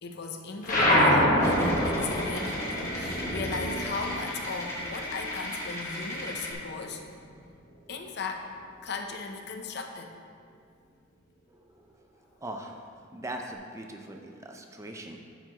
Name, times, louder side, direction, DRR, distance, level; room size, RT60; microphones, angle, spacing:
voice 1, 0.0-7.0 7.9-8.5 8.8-10.1, left 4 dB, 55° left, 4 dB, 0.6 m, -37 dB
sound 1, 0.6-5.5 5.8-7.3, equal, 40° left, 1.4 m, -26 dB
sound 2, 1.4-6.5, left 1 dB, 15° left, 1.4 m, -37 dB
voice 2, 11.5-12.8 13.1-15.2, right 1 dB, 15° right, 2 dB, 0.6 m, -41 dB
10.0 x 7.0 x 3.0 m, 2.2 s
head